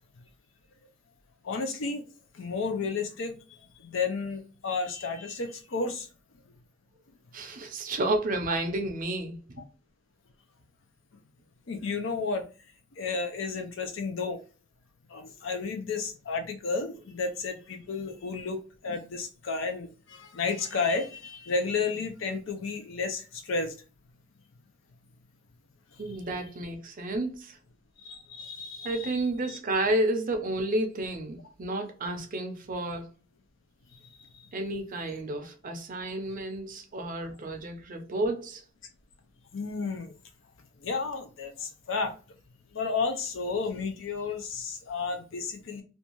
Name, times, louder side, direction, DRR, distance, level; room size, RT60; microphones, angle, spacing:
voice 1, 1.4-2.0 2.3-3.3 3.8-6.1 11.7-12.4 13.0-14.4 15.1-23.7 26.0-26.1 28.0-29.2 39.5-40.1 40.8-42.1 42.7-45.8, left 4 dB, 65° left, 0.5 m, -32 dB
voice 2, 7.3-9.4 26.0-27.6 28.8-33.1 34.5-38.6, right 2 dB, 40° right, 0.5 m, -31 dB
2.6 x 2.2 x 2.9 m
head